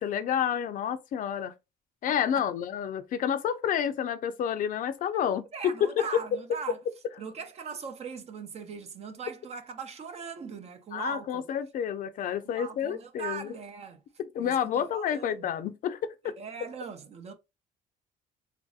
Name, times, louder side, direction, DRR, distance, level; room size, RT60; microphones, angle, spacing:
voice 1, 0.0-1.5 2.0-6.2 10.9-13.5 14.2-16.4, left 9 dB, 55° left, 0.5 m, -29 dB
voice 2, 5.1-6.8 7.2-11.5 12.4-14.0 14.4-15.5 16.2-17.3, right 6 dB, 40° right, 0.5 m, -40 dB
3.1 x 2.6 x 2.4 m
cardioid pair, 110°, 17 cm